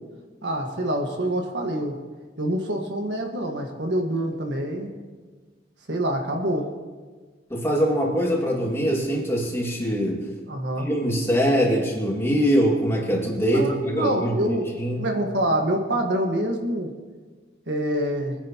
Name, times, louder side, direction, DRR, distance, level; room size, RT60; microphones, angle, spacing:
voice 1, 0.4-2.0 2.4-4.9 5.9-6.7 10.5-10.9 13.5-16.9 17.7-18.3, right 1 dB, 70° right, 2 dB, 1.6 m, -26 dB
voice 2, 7.5-10.2 10.8-15.0, equal, 15° left, -2 dB, 2.2 m, -23 dB
22.5 x 10.0 x 3.0 m, 1.4 s
head